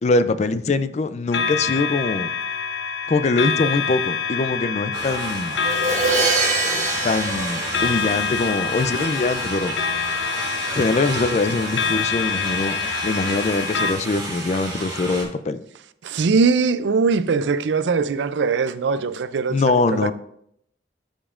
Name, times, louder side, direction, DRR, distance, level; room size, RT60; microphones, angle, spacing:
voice 1, 0.0-2.3 3.1-5.6 7.0-9.8 10.8-12.8 13.0-15.6 19.5-20.1, left 3 dB, 40° left, 0.4 m, -22 dB
sound 1, 1.3-13.9, left 6 dB, 85° left, 0.6 m, -26 dB
sound 2, 4.9-15.2, right 2 dB, 20° right, 2.6 m, -32 dB
Crash cymbal, 5.6-8.6, right 4 dB, 40° right, 1.2 m, -24 dB
voice 2, 16.0-20.1, right 4 dB, 75° right, 0.4 m, -21 dB
13.5 x 5.2 x 2.5 m
head